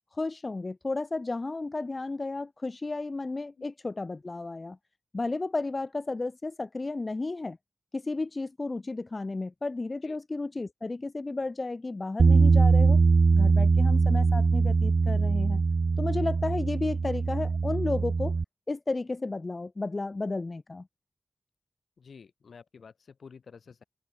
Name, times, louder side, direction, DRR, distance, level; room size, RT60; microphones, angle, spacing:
voice 1, 0.1-4.8 5.1-7.6 7.9-13.0 13.3-15.6 16.0-18.4 18.7-20.9, left 3 dB, 40° left, 1.2 m, -33 dB
Bass guitar, 12.2-18.4, right 4 dB, 65° right, 0.6 m, -22 dB
voice 2, 22.0-23.8, left 5 dB, 85° left, 2.2 m, -50 dB
open air
wide cardioid pair, 75°, 0 cm